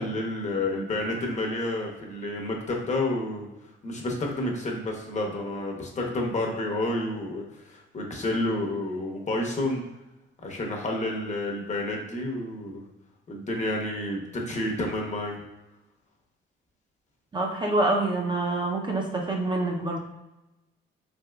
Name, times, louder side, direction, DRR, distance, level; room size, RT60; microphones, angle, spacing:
voice 1, 0.0-3.5 3.8-9.8 10.4-12.8 13.3-15.4, left 1 dB, 35° left, 0 dB, 0.8 m, -30 dB
voice 2, 17.3-20.0, right 2 dB, 25° right, 0 dB, 0.5 m, -26 dB
3.5 x 2.8 x 2.2 m, 0.96 s
cardioid pair, 90°, 20 cm